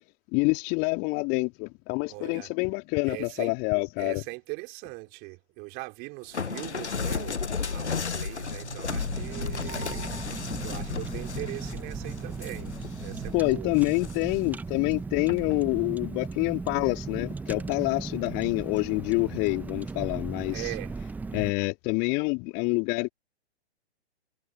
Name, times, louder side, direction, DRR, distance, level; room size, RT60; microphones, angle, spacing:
voice 1, 0.3-4.2 13.3-20.6 21.3-23.1, left 30 dB, 30° left, 2.7 m, -27 dB
voice 2, 2.1-2.5 3.1-3.6 4.0-13.7 20.5-21.0, right 26 dB, 30° right, 3.9 m, -40 dB
sound 1, 6.3-13.3 13.8-14.4 15.3-15.6, left 5 dB, 80° left, 1.1 m, -34 dB
sound 2, 8.3-13.4, right 4 dB, 75° right, 4.3 m, -45 dB
Car, 8.9-21.5, right 4 dB, 5° right, 1.0 m, -37 dB
figure-of-eight pair, 120°, 33 cm